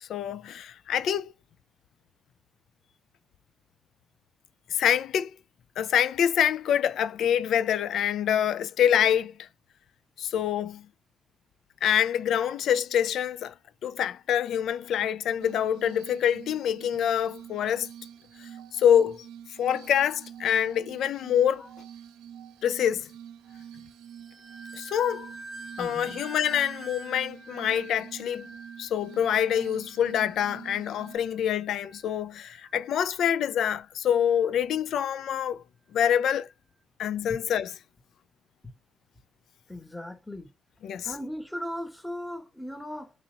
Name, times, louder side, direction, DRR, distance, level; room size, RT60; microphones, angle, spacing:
voice 1, 0.0-1.3 4.7-5.3 5.8-9.5 10.2-10.9 11.8-13.5 13.8-17.9 18.7-19.3 19.6-21.7 22.6-23.1 24.7-25.3 25.8-28.5 28.8-35.6 35.9-36.5 37.0-37.7 40.8-41.1, left 9 dB, 70° left, 0.4 m, -26 dB
Glass, 15.4-31.2, right 9 dB, 90° right, 0.7 m, -47 dB
sound 1, 24.0-33.0 33.3-33.8 34.3-34.5, right 2 dB, 25° right, 0.5 m, -47 dB
voice 2, 25.8-26.3 39.7-40.5 41.0-43.1, left 1 dB, 5° left, 1.4 m, -37 dB
3.2 x 2.8 x 3.9 m
cardioid pair, 90°, 0 cm